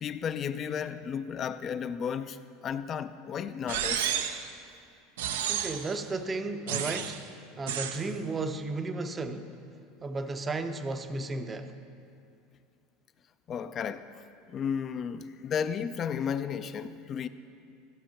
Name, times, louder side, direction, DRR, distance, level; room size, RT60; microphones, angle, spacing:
voice 1, 0.0-4.2 13.5-14.1 14.5-17.3, left 7 dB, 35° left, 13 dB, 0.4 m, -33 dB
sound 1, 3.7-4.5 5.2-5.9 6.7-7.2 7.7-8.0, right 9 dB, 85° right, 0.6 m, -31 dB
voice 2, 5.5-7.2 7.6-9.6 10.0-11.7, right 3 dB, 20° right, 9 dB, 0.6 m, -34 dB
13.0 x 6.6 x 5.8 m, 2.4 s
supercardioid pair, 115°, 0 cm